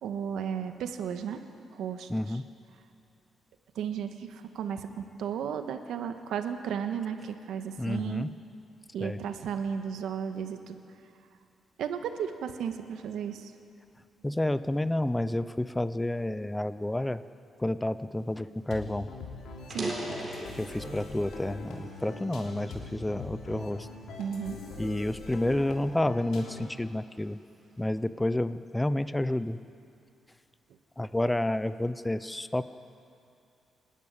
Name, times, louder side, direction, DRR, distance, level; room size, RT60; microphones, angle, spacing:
voice 1, 0.0-1.4 1.7-2.1 3.7-8.3 8.9-10.8 11.8-13.5 19.7-19.9 24.2-24.6, right 7 dB, 85° right, 7 dB, 1.4 m, -34 dB
voice 2, 2.1-2.4 7.8-8.3 9.0-9.2 14.2-17.2 17.6-19.1 20.5-23.9 24.8-27.4 27.8-29.6 31.0-32.6, left 1 dB, 10° left, 13 dB, 0.5 m, -30 dB
sound 1, 18.5-18.6 18.9-19.1 19.6-21.2 21.7-23.0 23.6-23.8 24.5-26.5, right 1 dB, 15° right, 4.1 m, -39 dB
sound 2, 18.7-26.8, left 3 dB, 80° left, 3.4 m, -43 dB
26.5 x 12.0 x 9.8 m, 2.8 s
cardioid pair, 145°, 0 cm